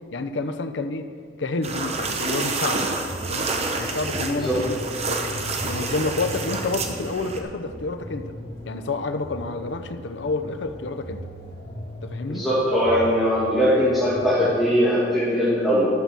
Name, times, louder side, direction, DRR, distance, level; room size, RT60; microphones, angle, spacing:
voice 1, 0.1-1.1 1.4-2.9 3.3-3.5 3.7-4.8 5.1-8.3 8.7-11.2 12.0-12.4, left 3 dB, 70° left, 8 dB, 0.7 m, -29 dB
sound 1, 1.6-7.4, right 3 dB, 35° right, 0.8 m, -28 dB
sound 2, 2.3-15.0, equal, 25° left, 3.4 m, -38 dB
voice 2, 4.3-4.6 12.3-15.9, equal, ahead, -11 dB, 2.2 m, -21 dB
11.5 x 6.0 x 6.9 m, 2.1 s
head